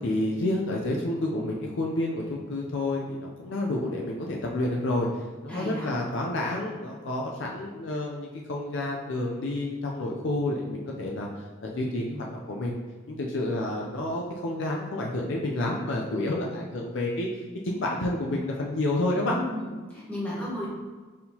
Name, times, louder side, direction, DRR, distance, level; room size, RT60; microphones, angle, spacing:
voice 1, 0.0-5.1 5.4-11.3 11.6-12.8 13.1-17.3 17.6-19.4, left 1 dB, 60° left, -1 dB, 0.5 m, -29 dB
voice 2, 5.5-5.9 19.1-20.7, left 1 dB, 5° left, -8 dB, 1.1 m, -34 dB
4.3 x 3.6 x 2.8 m, 1.4 s
head